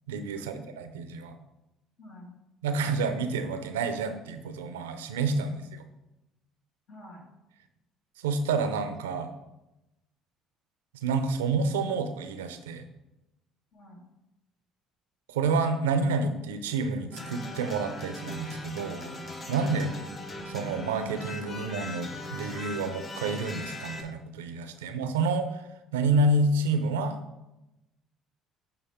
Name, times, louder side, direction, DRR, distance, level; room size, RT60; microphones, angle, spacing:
voice 1, 0.1-1.4 2.6-5.8 8.2-9.3 11.0-12.9 15.3-19.1 19.5-20.0 20.5-25.6 25.9-27.2, right 3 dB, 90° right, 9 dB, 0.5 m, -29 dB
voice 2, 2.0-2.3 6.9-7.3 13.7-14.0, equal, 70° left, -2 dB, 2.0 m, -49 dB
sound 1, 17.1-24.0, left 1 dB, 40° left, 0.9 m, -39 dB
7.8 x 4.0 x 3.5 m, 0.96 s
hypercardioid pair, 65°, 0 cm